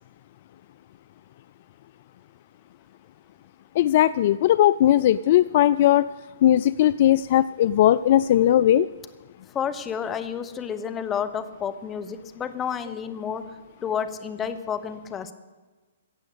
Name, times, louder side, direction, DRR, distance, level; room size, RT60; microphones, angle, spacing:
voice 1, 3.8-6.1 6.4-8.9, left 12 dB, 45° left, 16 dB, 0.3 m, -18 dB
voice 2, 9.5-13.4 13.8-15.3, left 7 dB, 20° left, 9 dB, 1.1 m, -30 dB
15.5 x 7.2 x 8.2 m, 1.3 s
figure-of-eight pair, 125°, 0 cm